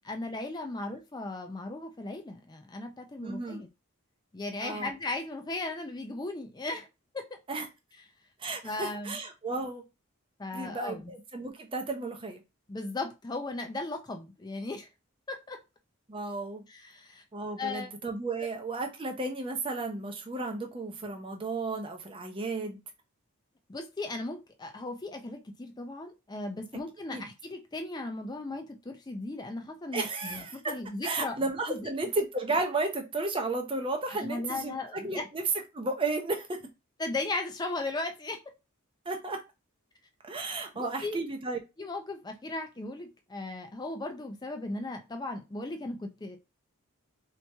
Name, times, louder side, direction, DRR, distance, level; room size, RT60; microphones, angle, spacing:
voice 1, 0.1-3.7 4.3-6.9 7.1-7.4 8.6-9.2 10.4-11.1 12.7-14.9 15.3-15.6 16.7-17.2 17.6-17.9 23.7-31.4 31.7-31.9 34.1-35.3 37.0-38.4 40.7-41.2 41.8-46.4, left 2 dB, 20° left, 0.4 m, -37 dB
voice 2, 3.2-3.6 4.6-4.9 7.5-7.7 8.4-9.8 10.5-12.4 16.1-16.7 17.3-22.8 27.1-27.3 29.9-30.8 31.0-35.4 35.7-36.6 39.1-39.4 40.2-41.6, right 3 dB, 25° right, 0.6 m, -33 dB
2.9 x 2.8 x 3.4 m
head